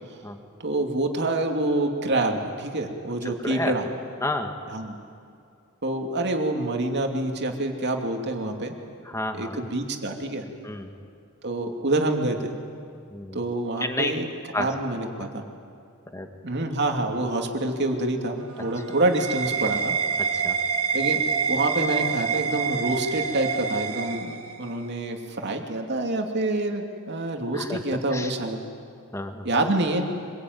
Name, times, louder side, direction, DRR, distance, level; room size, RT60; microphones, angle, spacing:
voice 1, 0.6-3.9 4.7-5.0 5.8-8.7 9.3-10.4 11.4-12.5 13.3-14.3 14.6-15.4 16.4-20.0 20.9-21.2 21.5-28.6 29.4-30.0, right 2 dB, 50° right, 3 dB, 2.6 m, -27 dB
voice 2, 3.3-3.7 4.2-4.6 9.1-9.6 10.6-10.9 13.1-13.4 13.8-14.1 14.5-14.7 15.2-15.3 16.1-16.3 20.2-20.6 27.5-27.8 28.1-28.3 29.1-29.5, left 1 dB, 15° left, 5 dB, 1.8 m, -30 dB
sound 1, 18.4-24.9, right 6 dB, 75° right, 2.0 m, -27 dB
25.0 x 22.5 x 9.5 m, 2.4 s
head